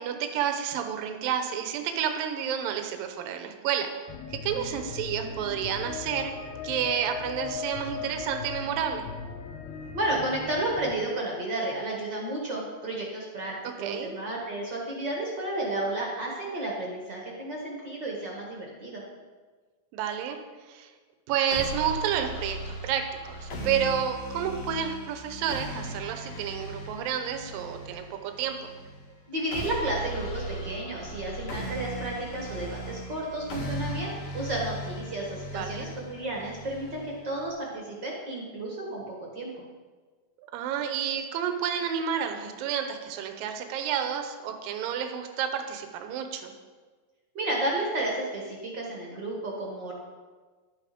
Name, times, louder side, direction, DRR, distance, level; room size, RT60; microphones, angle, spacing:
voice 1, 0.0-3.9 4.3-6.3 6.6-9.1 13.8-14.1 19.9-20.4 20.7-20.9 21.3-28.7 35.5-35.9 40.5-46.5, right 8 dB, 80° right, 6 dB, 2.5 m, -30 dB
sound 1, 4.1-10.9, left 6 dB, 75° left, 1.7 m, -38 dB
voice 2, 9.9-19.0 29.3-39.6 47.3-49.9, right 1 dB, 45° right, -2 dB, 1.6 m, -32 dB
sound 2, 21.5-37.5, equal, 50° left, 2.6 m, -38 dB
11.5 x 8.4 x 5.1 m, 1.4 s
omnidirectional pair, 4.2 m